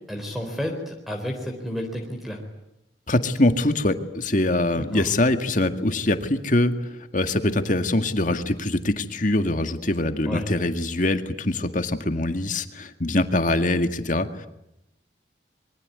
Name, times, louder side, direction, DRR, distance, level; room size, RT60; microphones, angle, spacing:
voice 1, 0.1-2.4 4.7-5.0 10.3-10.4, equal, ahead, 3 dB, 4.0 m, -31 dB
voice 2, 3.1-14.5, left 1 dB, 45° left, 8 dB, 2.0 m, -23 dB
26.0 x 23.5 x 9.6 m, 0.86 s
head